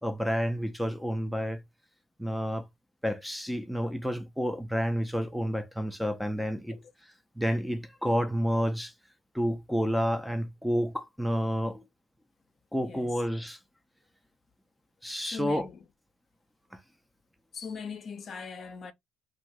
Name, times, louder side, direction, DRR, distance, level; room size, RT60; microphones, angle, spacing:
voice 1, 0.0-1.6 2.2-2.7 3.0-6.8 7.4-8.9 9.3-11.8 12.7-13.6 15.0-15.7 16.7-16.8, equal, ahead, 0.5 m, -30 dB
voice 2, 12.8-13.1 15.2-15.8 17.5-18.9, left 6 dB, 50° left, 0.6 m, -40 dB
2.6 x 2.6 x 3.1 m
supercardioid pair, 80°, 0 cm